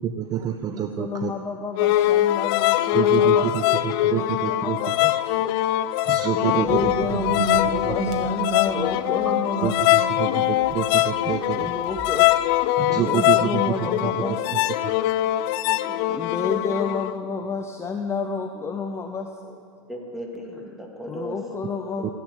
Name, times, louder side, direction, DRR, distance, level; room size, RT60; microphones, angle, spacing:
voice 1, 0.0-1.3 2.9-4.8 6.1-6.9 9.6-11.7 12.8-13.5 16.1-16.2, right 10 dB, 20° right, 9 dB, 0.5 m, -27 dB
voice 2, 0.7-5.4 6.4-9.8 11.4-12.3 12.9-14.7 16.1-19.6 21.1-22.1, left 5 dB, 15° left, 4 dB, 0.7 m, -30 dB
sound 1, 1.8-17.1, left 14 dB, 45° left, 0.5 m, -22 dB
voice 3, 6.4-6.7 9.2-9.4 9.8-9.9 11.4-11.5 14.2-14.3 15.6-16.6 19.9-21.4 22.0-22.1, equal, ahead, 0 dB, 2.2 m, -37 dB
sound 2, 6.6-12.2, right 5 dB, 45° right, 1.6 m, -33 dB
15.0 x 8.3 x 8.1 m, 2.5 s
hypercardioid pair, 105°, 17 cm